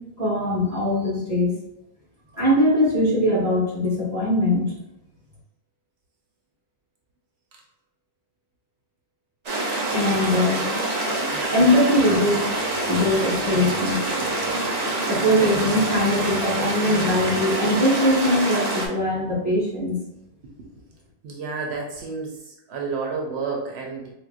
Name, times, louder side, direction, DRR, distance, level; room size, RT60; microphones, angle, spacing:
voice 1, 0.2-1.5 2.3-4.7 9.9-10.6 11.0-12.6 12.9-14.0 15.1-20.0, left 1 dB, 15° right, -7 dB, 1.5 m, -21 dB
sound 1, 9.5-18.9, right 2 dB, 50° right, 0.6 m, -26 dB
voice 2, 21.2-22.4 22.7-24.1, right 4 dB, 80° right, -1 dB, 0.8 m, -30 dB
4.4 x 2.1 x 2.4 m, 0.84 s
omnidirectional pair, 1.1 m